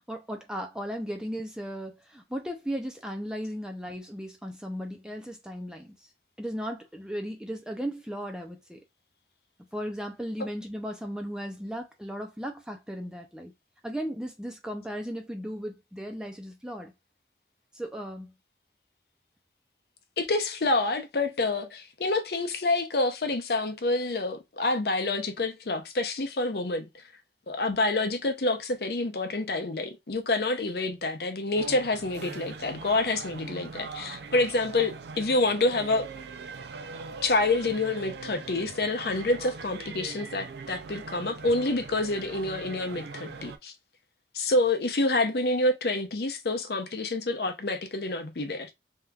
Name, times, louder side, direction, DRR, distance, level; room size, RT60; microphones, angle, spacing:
voice 1, 0.1-6.0 6.4-8.8 9.7-13.5 13.8-16.9 17.7-18.3, equal, 5° right, 0.5 m, -36 dB
voice 2, 20.2-27.0 27.5-36.1 37.2-43.7 44.3-48.7, left 2 dB, 60° left, 0.6 m, -27 dB
sound 1, 31.6-43.6, right 4 dB, 70° right, 0.4 m, -41 dB
3.4 x 2.8 x 2.3 m
head